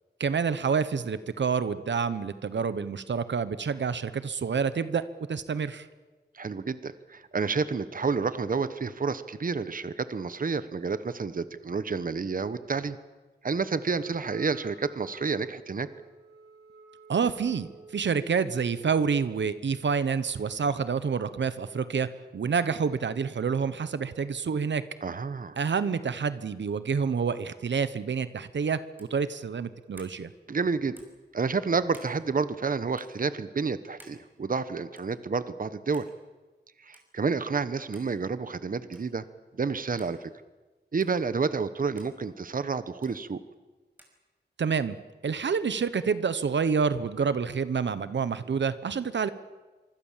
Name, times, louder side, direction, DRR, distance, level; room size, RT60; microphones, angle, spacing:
voice 1, 0.2-5.9 17.1-24.8 25.6-30.3 44.6-44.9 45.2-49.3, right 6 dB, 90° right, 13 dB, 1.1 m, -28 dB
voice 2, 6.3-13.0 13.4-15.9 25.0-25.6 30.5-31.0 31.3-36.1 36.8-39.2 39.5-40.3 40.9-43.4, right 4 dB, 50° right, 13 dB, 1.1 m, -30 dB
Wind instrument woodwind instrument, 14.0-18.1, right 4 dB, 65° right, 7.2 m, -53 dB
sound 1, 28.9-29.2 29.9-30.2 30.9-31.2 31.9-32.2 32.9-33.1 34.0-34.2 35.0-35.2 35.9-36.1 36.9-37.1 37.9-38.1 38.9-39.1 40.0-40.1 41.0-41.1 42.0-42.1 43.0-43.2 44.0-44.2, right 1 dB, 10° right, 5.8 m, -53 dB
25.5 x 24.5 x 7.5 m, 1.2 s
wide cardioid pair, 120°, 18 cm